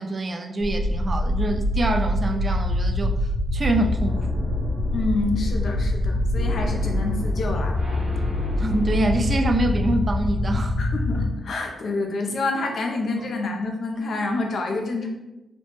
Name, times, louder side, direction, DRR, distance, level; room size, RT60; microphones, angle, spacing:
voice 1, 0.0-3.2 3.5-4.3 8.6-10.8, right 2 dB, 40° right, 4 dB, 0.3 m, -25 dB
sound 1, 0.6-11.3, left 1 dB, 85° right, 0.8 m, -24 dB
voice 2, 4.9-7.8 10.8-15.1, left 3 dB, 65° left, 2 dB, 0.5 m, -28 dB
3.0 x 2.0 x 3.1 m, 1.0 s
cardioid pair, 75°, 0 cm